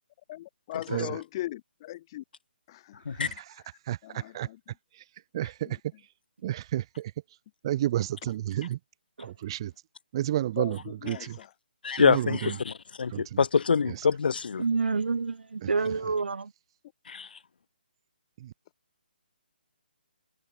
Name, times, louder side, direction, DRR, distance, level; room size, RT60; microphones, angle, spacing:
voice 1, 0.3-2.2 2.7-3.4 4.0-4.6 5.4-6.0 8.4-8.5 10.6-11.5 15.8-16.1, left 15 dB, 25° left, 6.5 m, -40 dB
voice 2, 5.3-5.7 6.4-7.1 7.6-8.8 9.4-9.7 10.1-10.8 11.1-11.2 12.0-12.3 13.1-13.2, right 13 dB, 30° right, 0.9 m, -29 dB
voice 3, 11.8-14.6 17.1-17.4, left 5 dB, 65° left, 1.5 m, -25 dB
voice 4, 14.6-16.5, right 4 dB, 85° right, 2.1 m, -28 dB
hypercardioid pair, 165°, 6 cm